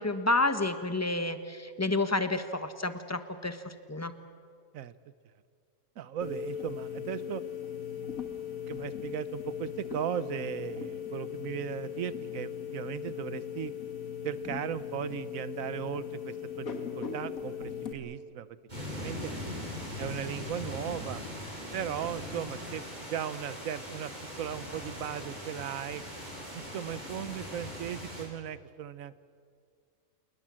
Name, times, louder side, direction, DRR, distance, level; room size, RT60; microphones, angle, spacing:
voice 1, 0.0-4.1, left 2 dB, 15° left, 10 dB, 1.0 m, -30 dB
voice 2, 6.0-7.4 7.9-8.1 8.7-13.7 14.2-18.5 18.9-19.3 20.0-21.2 21.7-26.0 26.5-29.1, right 9 dB, 75° right, 16 dB, 1.2 m, -37 dB
sound 1, 6.2-17.9, left 8 dB, 80° left, 2.2 m, -38 dB
sound 2, 18.7-28.3, left 1 dB, 30° right, 5.1 m, -40 dB
28.0 x 20.0 x 7.5 m, 2.1 s
omnidirectional pair, 1.4 m